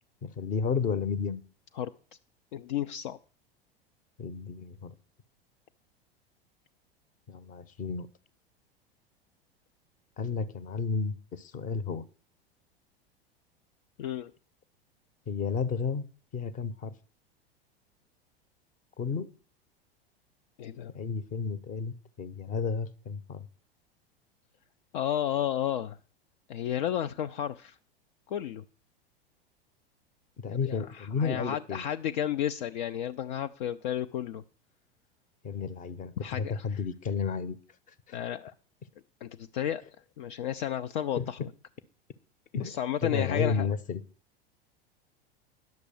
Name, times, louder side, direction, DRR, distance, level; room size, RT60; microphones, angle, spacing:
voice 1, 0.2-1.4 4.2-4.9 7.3-8.1 10.2-12.0 15.3-16.1 16.3-16.9 19.0-19.3 20.9-23.5 30.4-31.8 35.4-37.6 41.2-41.3 42.5-44.0, left 5 dB, 25° left, 17 dB, 0.9 m, -32 dB
voice 2, 2.5-3.2 14.0-14.3 20.6-20.9 24.9-26.0 26.5-27.8 28.3-28.6 30.5-34.4 36.2-36.8 38.1-38.5 39.2-39.8 40.2-41.5 42.6-43.7, left 10 dB, 50° left, 8 dB, 0.6 m, -32 dB
10.5 x 6.8 x 6.9 m, 0.40 s
figure-of-eight pair, 85°, 30 cm